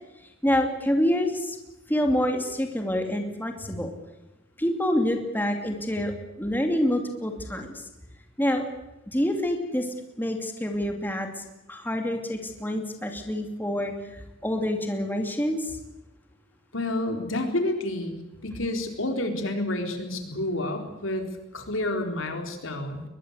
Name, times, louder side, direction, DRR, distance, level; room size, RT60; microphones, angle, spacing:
voice 1, 0.4-1.6 1.9-3.9 4.6-7.7 8.4-8.7 9.1-9.9 10.2-15.8, left 1 dB, 10° left, 4 dB, 2.6 m, -27 dB
voice 2, 16.7-21.3 21.5-23.0, left 1 dB, 85° left, 5 dB, 4.1 m, -29 dB
22.0 x 21.5 x 8.2 m, 0.98 s
head